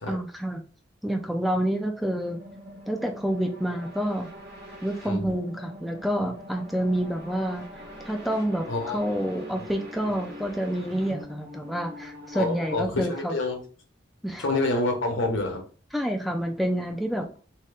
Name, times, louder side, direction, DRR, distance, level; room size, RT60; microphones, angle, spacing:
voice 1, 0.1-0.6 1.0-2.4 2.9-4.3 4.8-7.7 8.1-13.4 14.2-14.4 15.9-17.3, equal, ahead, 3 dB, 0.4 m, -28 dB
sound 1, 2.2-12.8, equal, 60° right, 1.1 m, -43 dB
voice 2, 5.0-5.3 8.7-9.0 12.3-13.6 14.4-15.6, left 2 dB, 75° left, 3 dB, 0.9 m, -27 dB
2.8 x 2.8 x 3.3 m, 0.39 s
head